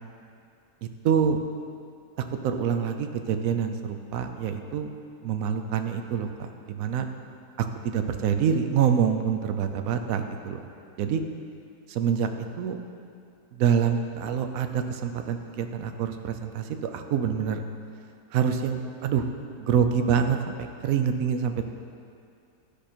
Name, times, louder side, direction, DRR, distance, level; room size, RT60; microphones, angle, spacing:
voice 1, 0.8-1.4 2.4-4.9 5.2-7.1 7.6-10.6 11.0-11.2 11.9-12.8 13.5-17.6 18.3-19.3 19.6-20.5 20.8-21.6, right 7 dB, 65° right, 6 dB, 1.0 m, -26 dB
13.5 x 5.1 x 4.4 m, 2.4 s
omnidirectional pair, 1.8 m